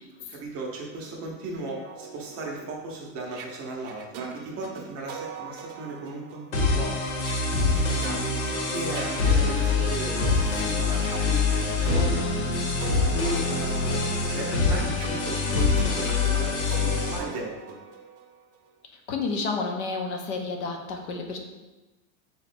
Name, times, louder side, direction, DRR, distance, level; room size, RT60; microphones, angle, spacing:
voice 1, 0.2-6.9 7.6-8.2 8.7-12.3 13.1-14.0 14.3-17.8, right 2 dB, 35° right, -1 dB, 0.7 m, -36 dB
sound 1, 1.6-10.4 10.9-18.7, right 7 dB, 85° right, 0.6 m, -42 dB
sound 2, 6.5-17.2, left 4 dB, 75° left, 1.0 m, -25 dB
voice 2, 19.1-21.4, left 4 dB, 55° left, 3 dB, 0.6 m, -30 dB
4.0 x 2.2 x 4.2 m, 1.1 s
supercardioid pair, 150°, 42 cm